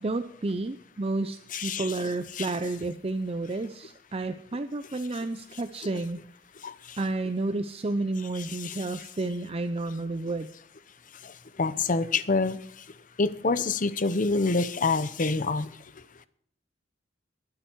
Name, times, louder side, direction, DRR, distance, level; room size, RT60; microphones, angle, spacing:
voice 1, 0.0-6.2 7.0-10.5, right 2 dB, 30° right, 10 dB, 0.6 m, -31 dB
voice 2, 1.5-1.9 2.4-2.5 6.6-6.7 8.6-8.8 11.6-12.6 13.2-15.7, left 3 dB, 45° left, 14 dB, 0.8 m, -26 dB
22.0 x 7.8 x 4.6 m, 0.65 s
head